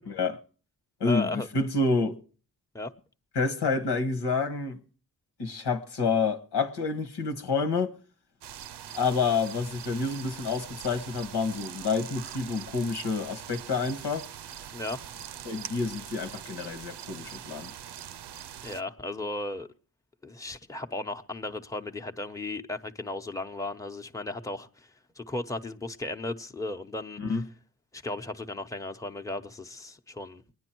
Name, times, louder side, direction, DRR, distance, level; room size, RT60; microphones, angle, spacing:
voice 1, 0.1-0.4 1.0-2.2 3.4-4.8 5.4-7.9 8.9-14.3 15.4-17.7 27.2-27.4, left 4 dB, 85° left, 1.8 m, -28 dB
voice 2, 1.0-1.5 2.7-2.9 14.7-15.0 18.6-19.7 20.2-27.4 27.9-30.4, left 2 dB, 10° left, 0.9 m, -35 dB
sound 1, 8.4-18.8, right 10 dB, 85° right, 0.7 m, -43 dB
23.5 x 9.7 x 4.6 m
cardioid pair, 70°, 40 cm